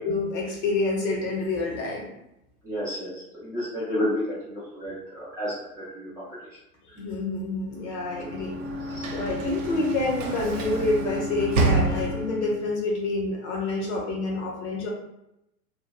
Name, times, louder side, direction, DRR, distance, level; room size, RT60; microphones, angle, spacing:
voice 1, 0.0-2.1 6.9-8.5 9.1-14.9, left 2 dB, 45° left, -2 dB, 0.8 m, -28 dB
voice 2, 2.6-3.1 3.4-5.5 5.9-6.1 8.9-9.1, left 1 dB, 5° right, -11 dB, 0.6 m, -30 dB
Sliding door / Slam, 7.9-12.6, right 2 dB, 55° right, 0.5 m, -28 dB
2.5 x 2.0 x 2.4 m, 0.84 s
figure-of-eight pair, 90°, 47 cm